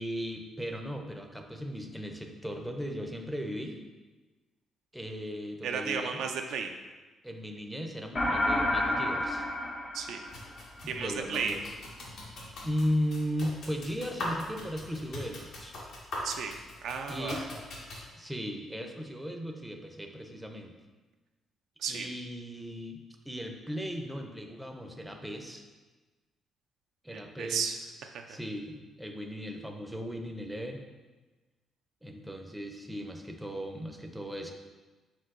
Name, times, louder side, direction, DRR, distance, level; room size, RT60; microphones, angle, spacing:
voice 1, 0.0-3.8 4.9-6.2 7.2-9.5 10.8-11.6 12.6-15.8 17.1-17.4 18.2-20.7 21.9-23.0 23.3-25.6 27.0-27.6 28.3-30.8 32.0-34.5, equal, 5° right, 3 dB, 0.5 m, -36 dB
voice 2, 5.6-6.7 9.9-10.2 10.9-11.6 16.2-16.6 16.8-17.4 21.8-22.1 27.1-28.2, right 6 dB, 80° right, 4 dB, 0.3 m, -34 dB
sound 1, 8.1-10.8, left 1 dB, 40° left, 0.7 m, -30 dB
sound 2, 10.3-18.1, left 1 dB, 80° left, 1.1 m, -42 dB
4.5 x 3.8 x 2.5 m, 1.2 s
cardioid pair, 90°, 0 cm